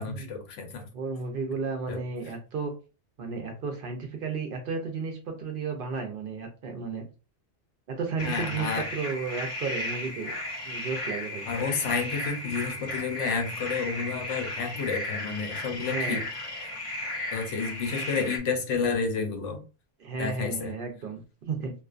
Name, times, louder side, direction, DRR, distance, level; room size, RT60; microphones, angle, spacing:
voice 1, 0.0-0.9 1.9-2.0 8.2-8.9 11.4-16.2 17.3-19.6 20.2-20.7, left 5 dB, 85° left, 5 dB, 1.0 m, -30 dB
voice 2, 0.9-2.7 3.2-7.1 7.9-10.3 10.6-11.5 15.8-16.2 20.0-21.7, right 4 dB, 60° right, 4 dB, 0.7 m, -33 dB
sound 1, 8.2-18.4, left 1 dB, 35° left, 0.6 m, -34 dB
2.4 x 2.2 x 2.4 m, 0.33 s
omnidirectional pair, 1.2 m